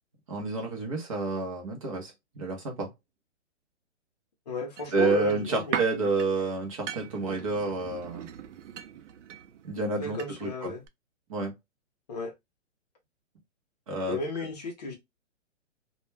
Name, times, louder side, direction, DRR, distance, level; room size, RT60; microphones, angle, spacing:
voice 1, 0.3-2.9 4.9-8.3 9.6-10.7 11.3-11.5 13.9-14.2, right 3 dB, 30° right, 0.6 m, -29 dB
voice 2, 4.5-5.8 10.0-10.8 12.1-12.3 14.1-15.0, left 2 dB, 35° left, 0.5 m, -34 dB
sound 1, 4.8-10.6 10.9-11.0, right 9 dB, 75° right, 0.5 m, -40 dB
2.2 x 2.1 x 3.1 m
hypercardioid pair, 160°, 36 cm